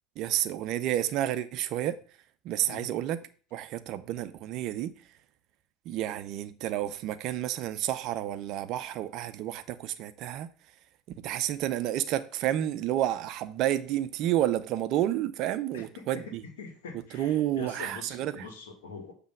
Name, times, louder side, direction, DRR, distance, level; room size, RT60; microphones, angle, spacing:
voice 1, 0.2-2.0 2.4-3.2 3.5-4.9 5.9-10.5 11.2-16.4 17.1-18.3, right 12 dB, 55° right, 0.6 m, -30 dB
voice 2, 15.7-19.1, left 4 dB, 75° left, 1.9 m, -44 dB
7.4 x 3.4 x 6.0 m
hypercardioid pair, 70°, 0 cm